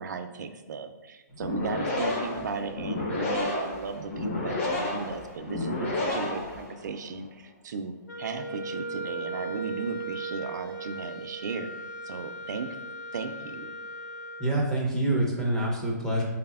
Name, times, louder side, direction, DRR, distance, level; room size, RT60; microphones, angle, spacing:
voice 1, 0.0-11.7 12.0-12.8 13.1-13.7, right 5 dB, 70° right, 8 dB, 0.4 m, -36 dB
sound 1, 1.3-7.0, left 2 dB, 45° left, 0.8 m, -31 dB
Wind instrument woodwind instrument, 8.1-14.5, right 2 dB, 65° left, 0.4 m, -37 dB
voice 2, 14.4-16.2, right 1 dB, 5° left, -3 dB, 0.4 m, -26 dB
4.1 x 3.4 x 2.3 m, 1.1 s
hypercardioid pair, 165°, 10 cm